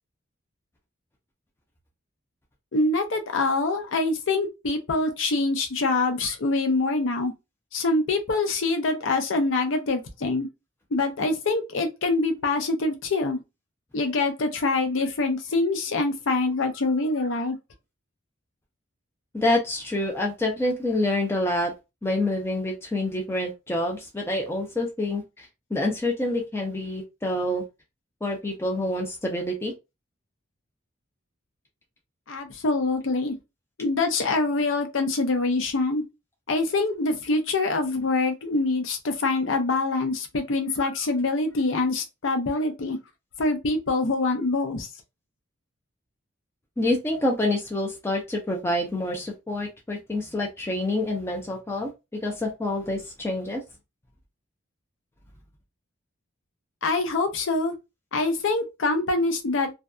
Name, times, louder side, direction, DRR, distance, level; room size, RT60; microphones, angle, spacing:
voice 1, 2.7-7.3 7.7-10.5 10.9-13.4 13.9-17.6 32.3-33.4 33.8-36.0 36.5-43.0 43.4-44.9 56.8-57.7 58.1-59.7, left 3 dB, 70° left, 0.6 m, -25 dB
voice 2, 19.3-21.7 22.0-27.6 28.2-29.7 46.8-51.9 52.2-53.6, left 1 dB, 10° left, 0.4 m, -27 dB
2.6 x 2.2 x 2.2 m
head